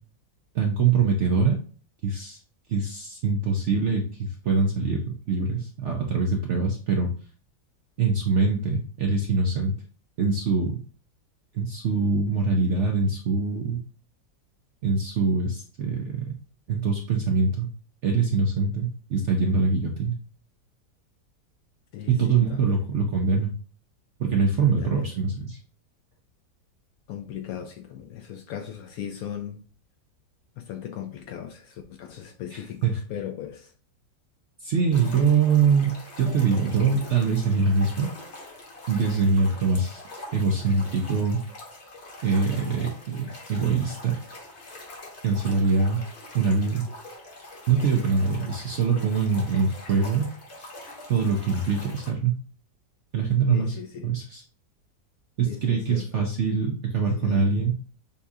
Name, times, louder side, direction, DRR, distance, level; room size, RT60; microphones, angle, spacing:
voice 1, 0.5-1.6 2.0-2.4 2.7-7.1 8.0-9.7 10.2-10.8 11.5-13.8 14.8-16.3 16.7-17.7 18.0-20.2 22.1-23.5 24.2-25.6 32.5-33.0 34.6-38.1 38.9-40.0 40.3-41.4 42.2-44.1 45.2-46.0 46.3-46.8 47.7-50.3 50.6-50.7 51.1-52.4 53.1-54.4 55.4-57.8, right 4 dB, 65° right, 0.7 m, -24 dB
voice 2, 21.9-22.8 24.6-25.1 27.1-29.6 30.6-33.7 53.5-54.1 55.4-56.3 57.2-57.4, left 9 dB, 70° left, 0.9 m, -38 dB
sound 1, 34.9-52.1, left 2 dB, 45° left, 1.2 m, -43 dB
6.9 x 2.4 x 2.7 m
omnidirectional pair, 1.9 m